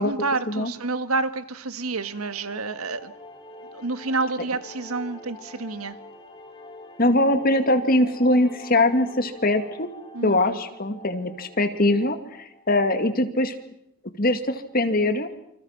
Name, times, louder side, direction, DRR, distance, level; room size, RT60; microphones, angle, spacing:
voice 1, 0.0-3.1 3.7-6.0 10.1-10.6, right 3 dB, 90° right, 1.5 m, -29 dB
sound 1, 1.8-12.9, left 1 dB, 20° left, 4.5 m, -45 dB
voice 2, 7.0-9.9 10.2-13.5 14.2-15.3, left 1 dB, 40° left, 2.3 m, -22 dB
28.0 x 26.5 x 5.9 m
head